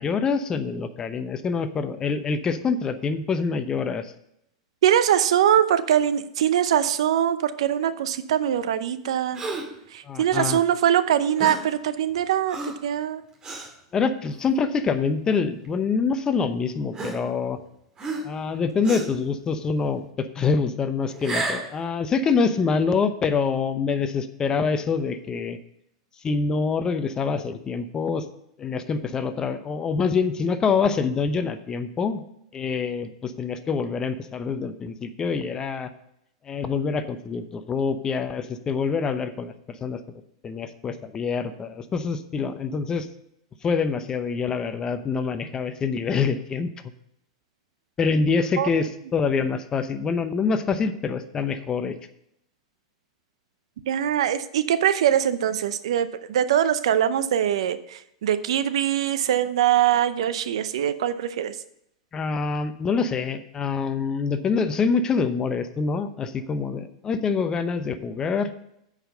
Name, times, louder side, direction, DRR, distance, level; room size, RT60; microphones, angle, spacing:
voice 1, 0.0-4.1 10.0-10.6 13.9-17.6 18.2-25.6 26.2-28.3 28.6-32.2 32.5-35.9 36.4-40.0 40.4-43.1 43.6-46.7 48.0-52.0 62.1-68.5, left 5 dB, 25° left, 11 dB, 0.8 m, -25 dB
voice 2, 4.8-9.4 9.9-12.6 12.8-13.2 48.6-48.7 53.9-61.6, right 10 dB, 75° right, 13 dB, 0.7 m, -22 dB
Gasp, 9.3-9.8 11.4-11.7 12.5-12.9 13.4-13.7 14.4-14.6 15.6-15.7 16.9-17.6 18.0-18.4 18.8-19.2 21.1-21.7, right 2 dB, 25° right, 2.0 m, -32 dB
8.8 x 5.0 x 6.5 m, 0.77 s
hypercardioid pair, 120°, 3 cm